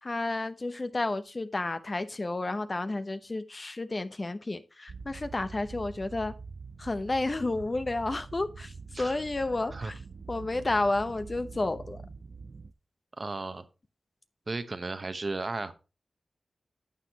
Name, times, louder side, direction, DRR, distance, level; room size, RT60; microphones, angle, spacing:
voice 1, 0.0-6.3 6.8-10.0 10.3-12.0, left 2 dB, 40° left, 0.8 m, -31 dB
sound 1, 4.9-12.7, right 4 dB, 65° right, 0.5 m, -45 dB
voice 2, 13.2-13.7 14.5-15.7, right 3 dB, 50° right, 0.9 m, -34 dB
12.0 x 7.3 x 2.9 m
cardioid pair, 50°, 0 cm